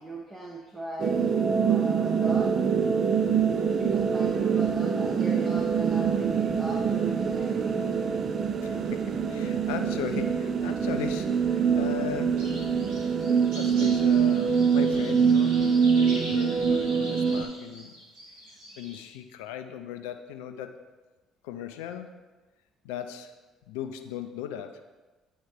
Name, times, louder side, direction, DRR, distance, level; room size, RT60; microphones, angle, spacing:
voice 1, 0.0-2.5 3.7-8.1, right 2 dB, 20° right, -1 dB, 0.8 m, -39 dB
sound 1, 1.0-17.4, right 6 dB, 45° right, 0.4 m, -25 dB
voice 2, 8.6-12.6 13.5-15.6 16.0-17.9 18.8-20.8 21.4-22.2 22.8-23.3 23.7-24.8, left 9 dB, 75° left, 7 dB, 0.4 m, -37 dB
sound 2, 12.4-19.0, equal, 70° right, 1.9 m, -43 dB
9.1 x 3.2 x 3.4 m, 1.2 s
hypercardioid pair, 55°, 0 cm